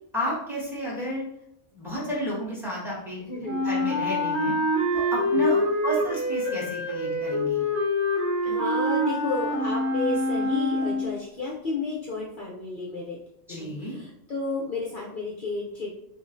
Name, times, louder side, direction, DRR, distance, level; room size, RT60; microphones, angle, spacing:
voice 1, 0.1-1.2 1.7-3.2 3.6-4.6 4.9-7.6 13.5-13.9, equal, ahead, -6 dB, 1.3 m, -31 dB
voice 2, 3.2-3.6 5.3-5.6 8.4-13.2 13.5-15.9, left 3 dB, 55° left, -3 dB, 0.7 m, -32 dB
Wind instrument woodwind instrument, 3.4-11.1, left 1 dB, 25° right, 1.5 m, -26 dB
5.1 x 2.5 x 2.6 m, 0.74 s
omnidirectional pair, 1.2 m